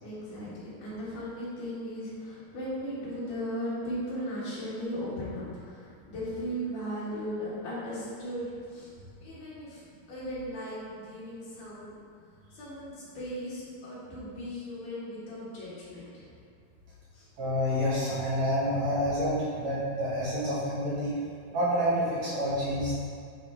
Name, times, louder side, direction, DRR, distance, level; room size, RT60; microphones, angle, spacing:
voice 1, 0.0-8.9 9.2-9.8 10.1-12.0 12.5-16.3 17.1-17.3, equal, 65° left, -9 dB, 3.1 m, -37 dB
voice 2, 17.4-21.1 21.5-22.9, equal, 60° right, -9 dB, 2.1 m, -28 dB
8.8 x 3.8 x 3.5 m, 2.3 s
omnidirectional pair, 4.3 m